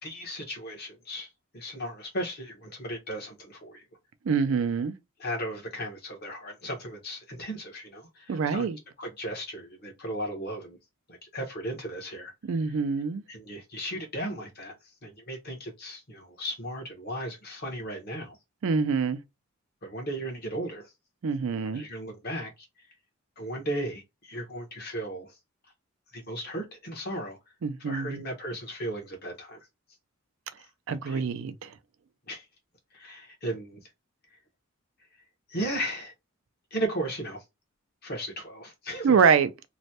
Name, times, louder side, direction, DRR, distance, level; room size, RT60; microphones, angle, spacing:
voice 1, 0.0-3.8 5.2-8.7 9.0-10.8 11.1-12.3 13.3-14.7 15.0-18.4 19.8-20.9 21.7-22.7 23.4-25.4 26.1-27.4 27.8-29.6 31.1-31.2 32.3-32.4 32.9-33.8 35.5-36.1 36.7-37.4 38.0-39.1, right 1 dB, 45° left, 1.1 m, -36 dB
voice 2, 4.3-4.9 8.3-8.8 12.5-13.2 18.6-19.2 21.2-21.8 27.6-28.2 30.9-31.7 39.0-39.5, right 6 dB, 65° right, 0.4 m, -25 dB
3.1 x 2.2 x 2.8 m
head